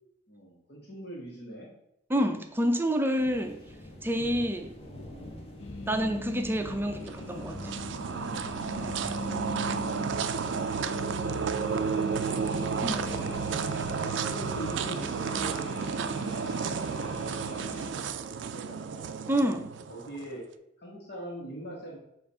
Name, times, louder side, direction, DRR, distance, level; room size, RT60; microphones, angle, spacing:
voice 1, 0.3-1.7 12.9-13.4 14.0-19.2 19.9-20.4 20.8-22.0, right 1 dB, 60° left, 1.3 m, -43 dB
voice 2, 2.1-3.6 4.0-4.7 5.9-7.7 12.8-13.1 19.3-19.7, equal, 10° right, 0.5 m, -28 dB
sound 1, 3.2-15.0, left 1 dB, 30° left, 0.9 m, -45 dB
sound 2, 5.6-17.9, left 2 dB, 80° left, 0.7 m, -40 dB
sound 3, 7.0-20.3, right 6 dB, 70° right, 0.4 m, -32 dB
6.9 x 2.5 x 5.4 m
head